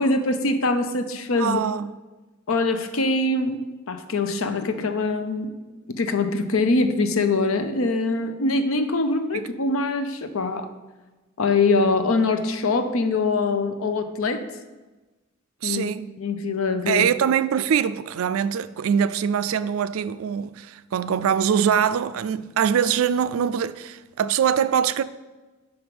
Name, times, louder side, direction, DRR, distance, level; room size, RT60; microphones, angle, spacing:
voice 1, 0.0-1.6 2.5-5.5 5.9-10.7 11.4-14.4 15.6-15.9 16.2-17.0, left 3 dB, 80° left, 0.7 m, -23 dB
voice 2, 1.4-1.9 9.3-9.5 15.6-16.1 16.9-25.0, right 8 dB, 85° right, 0.3 m, -23 dB
5.5 x 5.2 x 5.9 m
head